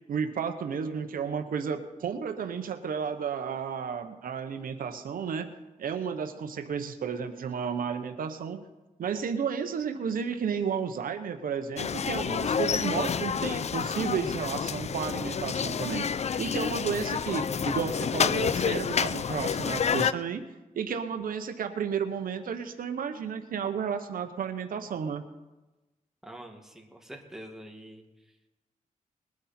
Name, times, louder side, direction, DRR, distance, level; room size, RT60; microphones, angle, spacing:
voice 1, 0.1-8.6 9.0-16.0 16.4-20.4 20.8-25.2, right 7 dB, 85° right, 8 dB, 1.0 m, -32 dB
sound 1, 11.8-20.1, left 7 dB, 50° left, 0.5 m, -29 dB
voice 2, 26.2-28.0, right 1 dB, 5° right, 2 dB, 2.1 m, -45 dB
20.5 x 9.7 x 4.4 m, 1.1 s
cardioid pair, 80°, 14 cm